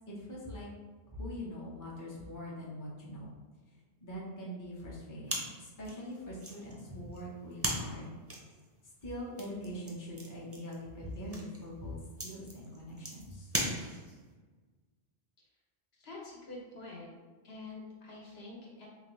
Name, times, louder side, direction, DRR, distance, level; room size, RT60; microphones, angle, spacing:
voice 1, 0.1-0.7 1.1-3.3 4.0-8.1 9.0-13.5, equal, 20° left, -5 dB, 0.7 m, -43 dB
sound 1, 5.2-14.3, right 1 dB, 20° right, 0.4 m, -40 dB
voice 2, 15.9-17.1 17.4-18.9, left 2 dB, 70° left, -3 dB, 1.1 m, -47 dB
3.8 x 2.8 x 3.1 m, 1.3 s
omnidirectional pair, 1.1 m